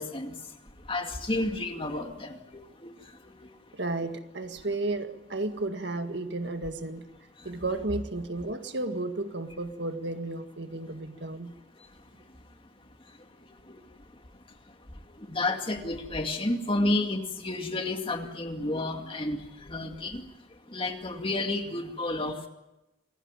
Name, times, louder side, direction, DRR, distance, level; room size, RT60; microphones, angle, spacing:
voice 1, 0.0-3.8 7.4-7.5 11.8-11.9 13.1-13.2 13.6-14.2 14.7-14.8 15.1-20.3 20.7-22.5, left 2 dB, 30° left, 4 dB, 2.3 m, -32 dB
voice 2, 3.7-7.0 7.5-11.5, right 2 dB, 65° right, 7 dB, 1.9 m, -33 dB
27.5 x 15.5 x 9.1 m, 0.97 s
head